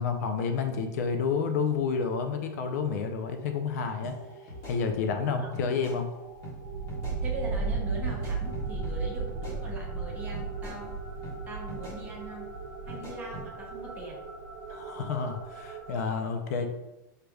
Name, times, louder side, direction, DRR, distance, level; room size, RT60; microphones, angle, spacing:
voice 1, 0.0-4.2 4.6-6.1 14.7-16.7, left 5 dB, 50° left, 6 dB, 0.5 m, -30 dB
sound 1, 3.1-16.2, right 4 dB, 60° right, 1.4 m, -36 dB
sound 2, 4.0-4.2 4.5-5.2 5.5-6.0 6.4-6.6 6.9-7.2 8.1-9.0 9.3-10.0 10.3-10.8 11.2-11.4 11.7-12.0 12.9-13.5, equal, 30° left, 1.5 m, -43 dB
voice 2, 7.2-12.5 12.9-14.2, right 2 dB, 15° right, -2 dB, 0.7 m, -41 dB
6.4 x 3.3 x 2.3 m, 1.0 s
supercardioid pair, 170°, 11 cm